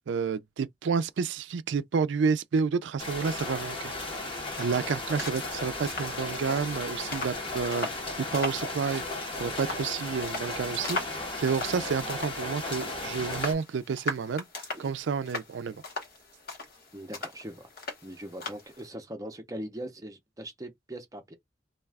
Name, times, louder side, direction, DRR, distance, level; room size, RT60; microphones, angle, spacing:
voice 1, 0.1-3.9 4.6-7.9 8.2-9.0 9.3-14.4 14.8-15.8, right 5 dB, 90° right, 0.4 m, -30 dB
sound 1, 3.0-13.5, left 2 dB, 30° left, 0.9 m, -35 dB
sound 2, 3.9-18.9, left 3 dB, 55° left, 1.0 m, -40 dB
voice 2, 16.9-17.7 18.0-21.3, right 1 dB, 20° right, 0.6 m, -41 dB
2.3 x 2.3 x 3.3 m
head